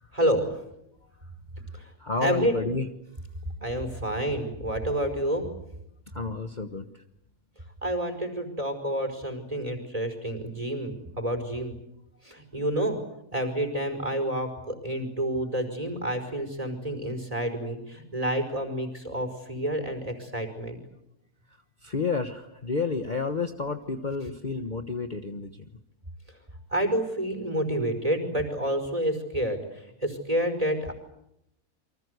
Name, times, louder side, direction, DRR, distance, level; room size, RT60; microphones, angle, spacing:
voice 1, 0.1-0.5 1.7-1.9 2.2-2.5 3.6-5.5 7.8-11.7 12.2-13.0 13.3-20.8 26.3-26.4 26.7-30.9, right 1 dB, 25° right, 7 dB, 5.1 m, -29 dB
voice 2, 2.0-2.9 6.1-7.0 21.8-25.6, left 4 dB, 35° left, 7 dB, 1.4 m, -30 dB
29.0 x 24.5 x 8.1 m, 0.82 s
omnidirectional pair, 1.5 m